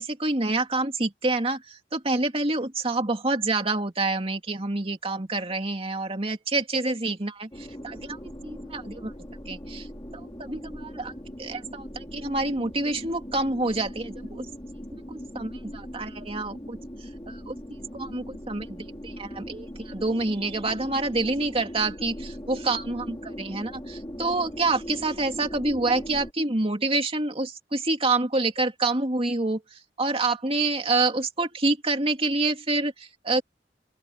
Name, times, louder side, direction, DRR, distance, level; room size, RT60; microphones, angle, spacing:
voice 1, 0.0-9.1 9.5-9.9 10.1-11.1 11.4-14.5 14.9-16.8 17.3-17.6 17.9-33.4, right 2 dB, 35° right, 2.5 m, -27 dB
sound 1, 7.5-26.3, equal, 25° left, 3.7 m, -40 dB
open air
head